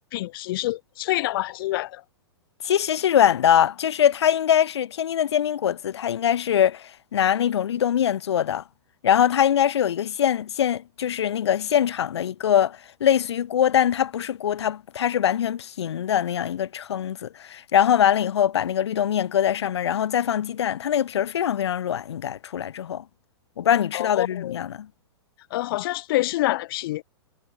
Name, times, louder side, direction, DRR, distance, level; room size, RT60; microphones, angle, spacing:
voice 1, 0.1-2.0 23.9-24.6 25.5-27.0, left 17 dB, 55° left, 1.7 m, -27 dB
voice 2, 2.6-8.6 9.0-23.0 23.6-24.9, left 10 dB, 70° left, 0.7 m, -23 dB
hypercardioid pair, 110°, 14 cm